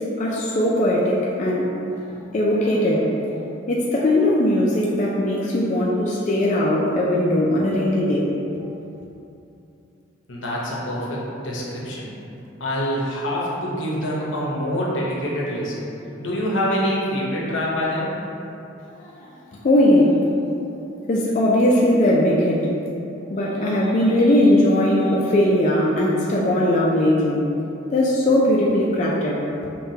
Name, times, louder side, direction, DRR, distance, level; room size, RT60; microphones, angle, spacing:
voice 1, 0.2-1.7 2.3-3.1 3.7-8.3 19.0-19.3 19.6-20.2 21.1-22.7 23.3-27.5 27.9-29.4, left 1 dB, 40° left, -4 dB, 0.3 m, -19 dB
voice 2, 10.3-12.1 12.6-15.8 16.2-18.1, equal, 80° left, -5 dB, 0.8 m, -25 dB
5.5 x 2.3 x 2.7 m, 2.8 s
head